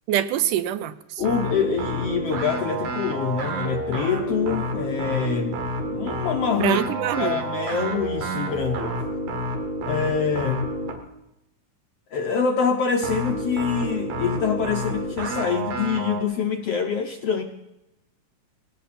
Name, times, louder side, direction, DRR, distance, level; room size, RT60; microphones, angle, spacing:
voice 1, 0.1-0.9 6.6-7.4, right 11 dB, 80° right, 12 dB, 2.2 m, -24 dB
voice 2, 1.2-6.8 7.2-9.0 9.8-10.7 12.1-17.4, left 6 dB, 70° left, 5 dB, 1.5 m, -25 dB
sound 1, 1.2-11.1 13.0-16.2, right 1 dB, 55° right, 3.1 m, -29 dB
19.5 x 17.0 x 4.3 m, 0.89 s
omnidirectional pair, 3.9 m